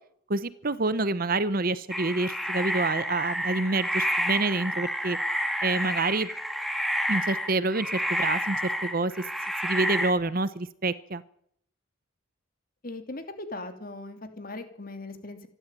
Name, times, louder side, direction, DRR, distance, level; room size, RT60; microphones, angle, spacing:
voice 1, 0.3-5.2 5.6-6.3 7.1-9.1 9.6-11.2, right 3 dB, 40° right, 15 dB, 0.8 m, -27 dB
sound 1, 1.9-10.1, equal, ahead, 1.8 m, -29 dB
voice 2, 12.8-15.5, left 2 dB, 40° left, 7 dB, 2.8 m, -39 dB
26.0 x 12.0 x 9.1 m, 0.69 s
head